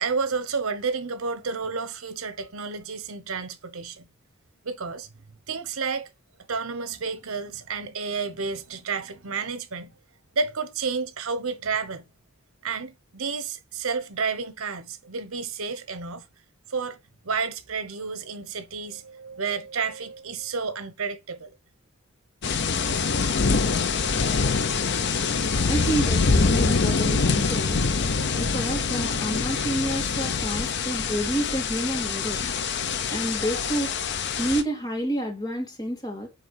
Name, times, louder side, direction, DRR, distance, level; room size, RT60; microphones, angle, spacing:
voice 1, 0.0-4.1 4.6-5.1 5.5-6.1 6.5-9.9 10.3-12.0 12.6-16.2 16.7-17.0 17.2-21.5, right 5 dB, 80° right, 1.1 m, -31 dB
sound 1, 22.4-34.6, left 4 dB, 55° left, 0.7 m, -25 dB
voice 2, 25.7-27.8 28.4-32.4 33.1-33.9 34.4-36.3, right 1 dB, 20° left, 1.9 m, -29 dB
8.9 x 3.3 x 4.9 m
head